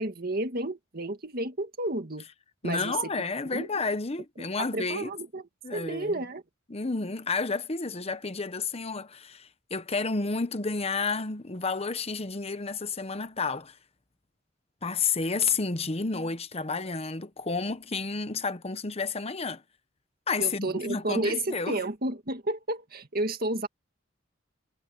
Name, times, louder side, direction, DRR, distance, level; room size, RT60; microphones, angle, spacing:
voice 1, 0.0-2.3 2.6-3.1 3.5-3.7 4.6-5.4 5.7-6.4 20.4-23.7, right 2 dB, 50° right, 2.0 m, -31 dB
voice 2, 2.6-5.1 5.6-6.2 6.7-13.8 14.8-19.6 20.3-21.8, left 4 dB, 30° left, 1.0 m, -31 dB
head